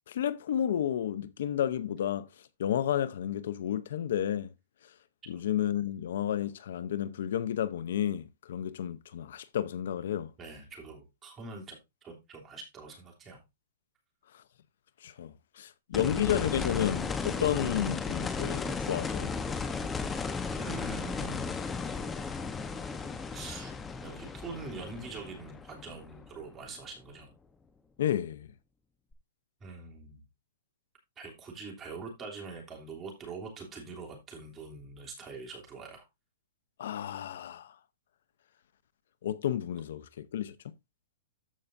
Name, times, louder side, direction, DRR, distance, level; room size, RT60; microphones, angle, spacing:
voice 1, 0.1-2.3 2.6-4.5 5.3-10.3 14.3-14.4 15.0-19.3 28.0-28.5 36.8-37.8 39.2-40.5, left 10 dB, 65° left, 0.7 m, -31 dB
voice 2, 10.4-13.4 20.5-21.5 23.3-23.7 24.0-27.3 29.6-30.2 31.2-36.1, right 4 dB, 15° right, 3.0 m, -44 dB
sound 1, 15.9-26.8 29.1-29.2, left 4 dB, 10° left, 1.0 m, -35 dB
13.5 x 5.6 x 2.6 m
hypercardioid pair, 160°, 0 cm